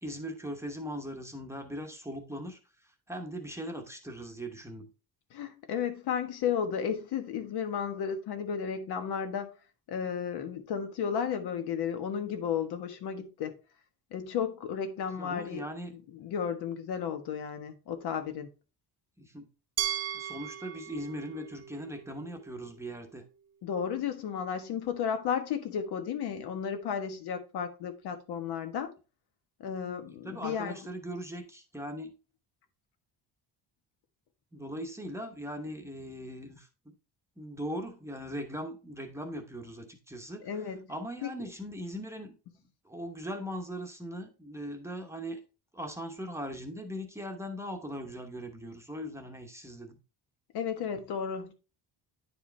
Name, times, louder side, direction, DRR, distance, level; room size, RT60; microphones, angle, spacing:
voice 1, 0.0-2.6 3.1-4.9 15.2-15.9 19.2-19.5 20.1-23.2 30.1-32.1 34.5-36.9 37.4-40.5 40.9-42.3 42.8-45.4 45.7-50.0, equal, 5° right, 0.9 m, -39 dB
voice 2, 5.3-9.5 9.9-13.6 14.1-15.6 16.1-18.5 23.6-28.9 29.6-30.9 40.4-40.9 41.2-41.3 50.5-51.5, left 7 dB, 75° left, 1.3 m, -33 dB
Glass, 19.8-22.7, right 10 dB, 40° right, 0.5 m, -37 dB
9.8 x 4.8 x 3.3 m
cardioid pair, 155°, 40 cm